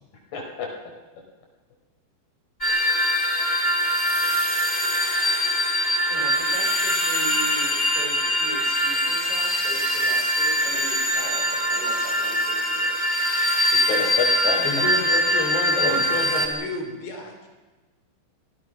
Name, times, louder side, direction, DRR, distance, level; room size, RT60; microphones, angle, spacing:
voice 1, 0.3-0.7 13.9-14.8 15.7-16.2, left 5 dB, 50° left, 1 dB, 6.3 m, -28 dB
sound 1, 2.6-16.5, equal, 10° left, 2.6 m, -23 dB
voice 2, 6.1-12.9 13.9-14.0 15.7-16.0, right 2 dB, 40° right, 0 dB, 6.6 m, -38 dB
voice 3, 14.6-17.5, left 4 dB, 75° left, 2 dB, 6.2 m, -30 dB
26.0 x 18.5 x 6.1 m, 1.2 s
omnidirectional pair, 5.1 m